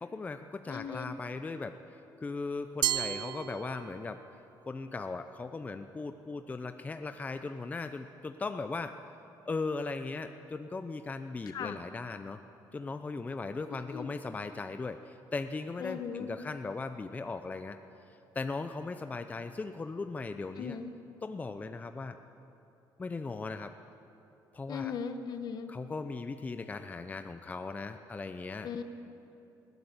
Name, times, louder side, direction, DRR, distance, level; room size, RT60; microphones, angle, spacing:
voice 1, 0.0-4.2 4.7-9.0 9.4-12.4 12.7-17.8 18.1-20.8 21.2-22.2 23.0-23.7 24.5-24.9 25.7-28.7, left 3 dB, 20° left, 8 dB, 0.6 m, -38 dB
voice 2, 0.7-1.1 11.5-11.8 13.9-14.1 15.8-16.3 20.6-20.9 24.7-25.7 28.6-28.8, left 7 dB, 55° left, 8 dB, 1.5 m, -38 dB
Glass, 2.8-4.3, right 11 dB, 70° right, 0.6 m, -33 dB
20.5 x 16.5 x 8.7 m, 3.0 s
cardioid pair, 140°, 8 cm